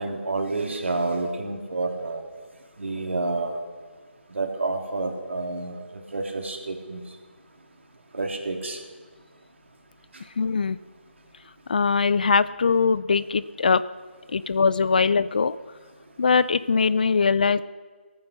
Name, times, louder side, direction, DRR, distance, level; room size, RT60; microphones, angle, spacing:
voice 1, 0.0-2.2 2.8-3.6 4.3-5.7 6.1-7.0 8.2-8.8, right 3 dB, 75° right, 2 dB, 3.1 m, -29 dB
voice 2, 10.4-10.8 11.7-13.8 14.3-15.6 16.2-17.6, left 5 dB, 45° left, 17 dB, 0.4 m, -21 dB
18.0 x 9.5 x 6.6 m, 1.5 s
hypercardioid pair, 170°, 7 cm